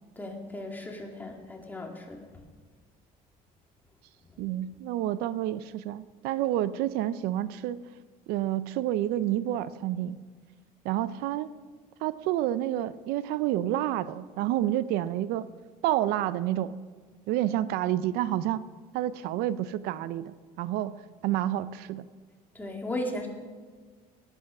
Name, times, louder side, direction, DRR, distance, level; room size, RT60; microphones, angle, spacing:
voice 1, 0.2-2.3 22.5-23.3, left 1 dB, 10° left, 1 dB, 2.3 m, -36 dB
voice 2, 4.4-7.9 8.3-10.2 10.8-11.5 12.0-15.5 15.8-16.8 17.3-18.7 18.9-20.9 21.2-22.1, right 13 dB, 85° right, 15 dB, 0.6 m, -29 dB
18.0 x 9.9 x 6.0 m, 1.5 s
cardioid pair, 135°, 16 cm